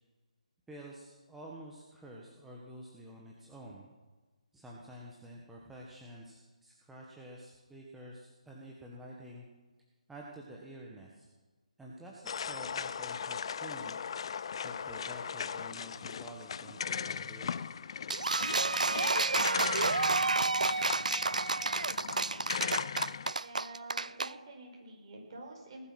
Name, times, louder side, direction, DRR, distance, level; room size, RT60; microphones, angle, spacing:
voice 1, 0.7-3.9 4.5-9.4 10.1-11.3 11.8-17.8, right 1 dB, 5° right, -3 dB, 1.5 m, -49 dB
sound 1, 12.3-23.3, left 7 dB, 45° left, 0.5 m, -38 dB
sound 2, 18.1-24.3, right 3 dB, 80° right, 0.5 m, -30 dB
voice 2, 23.2-25.9, right 2 dB, 40° right, 0 dB, 5.3 m, -48 dB
19.5 x 11.5 x 6.1 m, 1.3 s
figure-of-eight pair, 150°, 4 cm